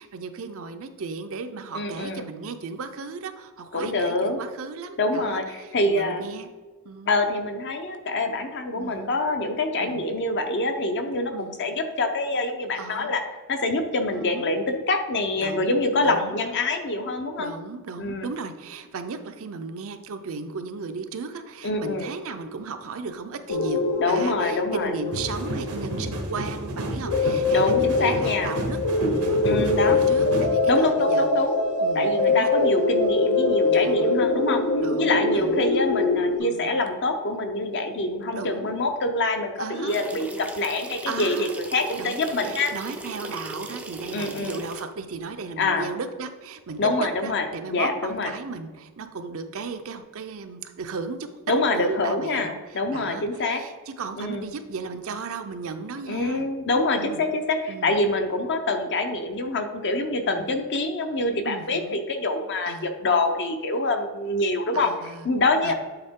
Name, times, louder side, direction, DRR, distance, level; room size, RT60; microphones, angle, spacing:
voice 1, 0.0-6.5 6.8-7.2 8.8-9.1 9.8-10.0 11.3-11.6 12.8-13.1 14.1-14.4 15.4-16.4 17.4-28.8 29.0-31.3 31.8-32.5 33.6-34.1 34.8-35.7 36.4-36.8 38.3-38.7 39.6-40.1 41.1-41.6 42.0-51.2 51.7-56.5 56.9-57.2 57.7-57.9 60.3-60.5 61.4-62.0 62.7-62.9 64.7-65.3 65.6-65.7, right 4 dB, 65° right, 8 dB, 0.5 m, -35 dB
voice 2, 1.7-2.3 3.7-4.4 5.0-6.4 7.1-11.3 11.6-13.2 13.5-17.5 18.0-18.3 21.6-22.1 24.0-24.9 27.5-28.5 29.4-30.0 30.7-31.5 31.9-34.6 35.0-42.7 44.1-44.6 45.6-45.9 46.8-48.3 51.5-53.6 54.2-54.5 56.1-64.9 65.2-65.7, left 2 dB, 55° left, 6 dB, 0.6 m, -25 dB
sound 1, 23.5-36.4, left 3 dB, 85° left, 0.9 m, -23 dB
sound 2, 25.1-30.5, right 1 dB, 90° right, 1.1 m, -31 dB
sound 3, 39.9-44.8, right 1 dB, 5° right, 0.4 m, -37 dB
8.0 x 3.6 x 3.6 m, 1.4 s
head